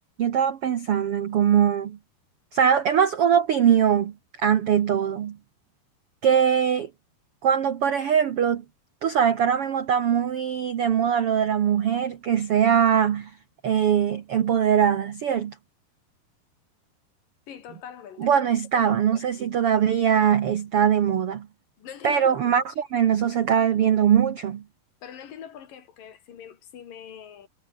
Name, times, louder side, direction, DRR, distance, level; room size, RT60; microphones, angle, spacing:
voice 1, 0.2-2.0 2.5-4.1 4.4-5.4 6.2-6.9 7.4-8.6 9.0-13.3 13.6-15.5 18.2-21.5 22.0-24.6, right 8 dB, 85° right, 1.2 m, -21 dB
voice 2, 17.5-18.5 18.7-19.2 21.8-22.6 25.0-27.5, left 8 dB, 60° left, 4.3 m, -43 dB
omnidirectional pair, 4.6 m